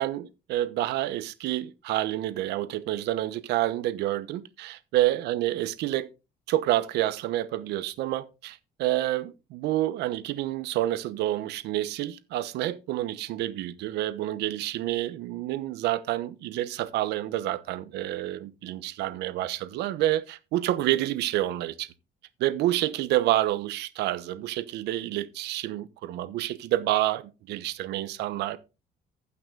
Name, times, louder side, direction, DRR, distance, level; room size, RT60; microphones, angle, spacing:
voice 1, 0.0-6.1 6.5-21.9 22.4-28.6, right 14 dB, 85° right, 1.0 m, -28 dB
15.5 x 6.0 x 3.8 m
cardioid pair, 110°, 17 cm